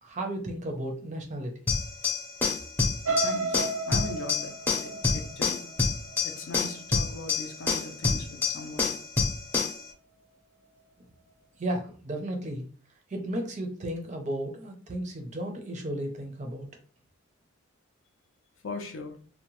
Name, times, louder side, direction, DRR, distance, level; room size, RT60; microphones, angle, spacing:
voice 1, 0.0-1.7 11.6-12.6 13.1-16.7, right 1 dB, 35° right, 3 dB, 0.5 m, -34 dB
sound 1, 1.7-9.8, left 4 dB, 10° left, 0.6 m, -28 dB
sound 2, 3.0-7.0 7.5-7.8 8.1-8.2, right 3 dB, 80° right, 0.7 m, -33 dB
voice 2, 3.2-3.6 3.9-4.5 4.8-5.6 6.2-8.9 18.6-19.2, left 3 dB, 65° left, 5 dB, 0.5 m, -39 dB
2.7 x 2.1 x 2.9 m, 0.41 s
head